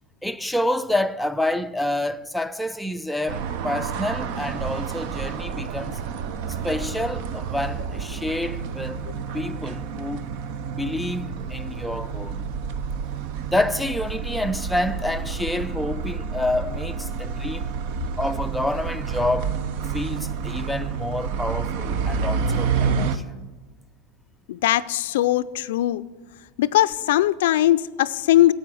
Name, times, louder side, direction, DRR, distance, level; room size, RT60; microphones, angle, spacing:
voice 1, 0.2-6.0 6.6-9.0 9.3-10.4 10.7-12.5 13.4-17.7 18.2-19.6 19.9-23.5, left 1 dB, 5° left, 0.4 m, -28 dB
sound 1, 3.3-23.2, right 6 dB, 60° right, 0.7 m, -29 dB
voice 2, 24.5-26.0 26.6-28.5, left 14 dB, 75° left, 0.4 m, -20 dB
10.5 x 7.8 x 7.7 m
hypercardioid pair, 110°, 0 cm